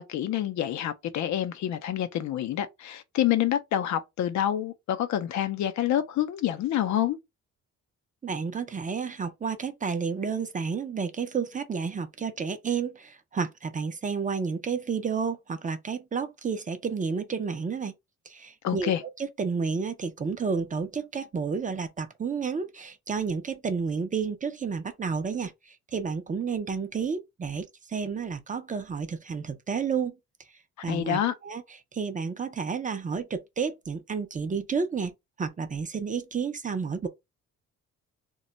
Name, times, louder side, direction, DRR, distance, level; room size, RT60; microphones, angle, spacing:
voice 1, 0.0-7.2 18.6-19.0 30.9-31.3, left 11 dB, 70° left, 0.5 m, -27 dB
voice 2, 8.2-17.9 18.3-18.9 19.4-30.2 30.8-31.6 31.9-35.1 35.4-37.1, right 5 dB, 25° right, 0.5 m, -31 dB
2.2 x 2.1 x 3.8 m
cardioid pair, 90°, 30 cm